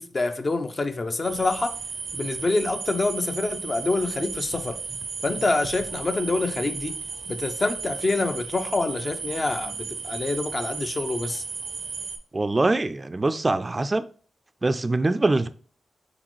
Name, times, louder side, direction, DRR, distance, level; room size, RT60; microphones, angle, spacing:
voice 1, 0.0-1.8 2.1-4.8 5.2-7.0 7.3-9.8 10.0-11.4, left 3 dB, 45° left, 0.6 m, -26 dB
sound 1, 1.2-12.2, right 5 dB, 85° right, 0.5 m, -34 dB
voice 2, 12.3-14.1 14.6-15.5, right 2 dB, 35° right, 0.3 m, -23 dB
4.0 x 4.0 x 3.0 m
cardioid pair, 45°, 0 cm